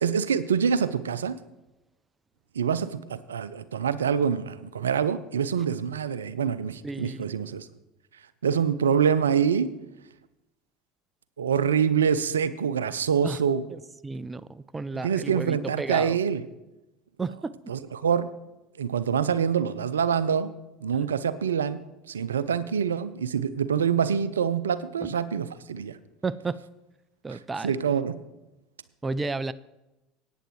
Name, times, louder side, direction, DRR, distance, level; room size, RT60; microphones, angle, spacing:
voice 1, 0.0-1.4 2.6-7.7 8.4-9.7 11.4-13.7 15.0-16.4 17.7-18.3 18.8-20.5 20.8-26.0 27.3-28.2, right 7 dB, 85° right, 16 dB, 0.4 m, -25 dB
voice 2, 6.8-7.2 13.2-13.4 14.0-16.2 17.2-17.5 26.2-26.6 27.2-27.8 29.0-29.5, right 3 dB, 20° right, 18 dB, 0.4 m, -32 dB
17.5 x 9.1 x 3.1 m, 1.0 s
hypercardioid pair, 75°, 0 cm